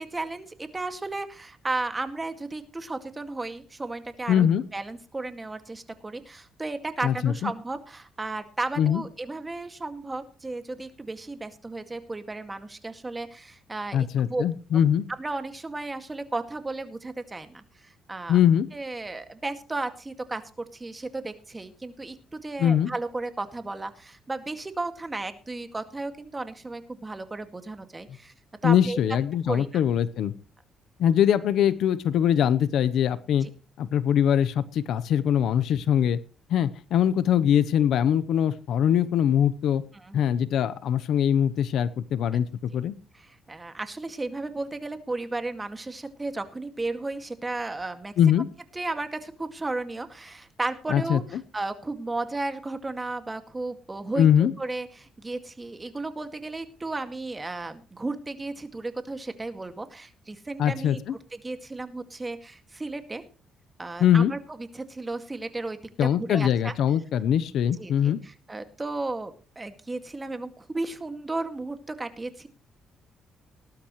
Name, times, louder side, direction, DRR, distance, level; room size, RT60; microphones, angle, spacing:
voice 1, 0.0-4.5 4.7-14.4 15.2-18.4 18.7-28.3 28.6-29.0 29.5-29.7 33.4-33.5 39.9-40.3 43.1-48.1 48.7-61.0 61.3-63.2 63.8-64.4 64.7-66.7 67.8-72.5, right 2 dB, 20° right, 8 dB, 2.1 m, -34 dB
voice 2, 4.3-4.6 7.0-7.5 8.8-9.0 13.9-15.0 18.3-18.7 22.6-22.9 28.6-30.3 31.0-33.5 33.8-36.2 36.5-39.8 40.1-42.9 48.2-48.5 50.9-51.2 54.2-54.5 60.6-61.1 64.0-64.3 66.0-68.2, left 9 dB, 75° left, 14 dB, 0.9 m, -22 dB
19.0 x 11.5 x 3.2 m, 0.35 s
cardioid pair, 90°, 0 cm